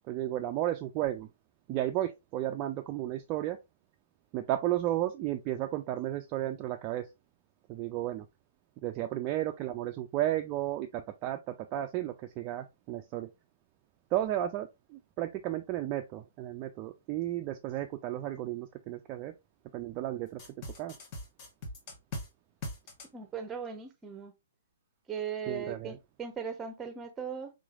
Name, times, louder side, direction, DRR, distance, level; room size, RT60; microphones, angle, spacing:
voice 1, 0.1-1.3 1.7-3.6 4.3-7.1 7.7-8.3 8.8-13.3 14.1-19.3 19.7-20.4 20.8-20.9 25.5-26.0, right 13 dB, 30° right, 0.3 m, -33 dB
sound 1, 20.4-22.3 22.6-23.1, left 2 dB, 35° left, 1.1 m, -40 dB
voice 2, 23.1-24.3 25.1-27.5, right 6 dB, 15° right, 0.8 m, -38 dB
3.7 x 3.1 x 2.4 m
hypercardioid pair, 135°, 0 cm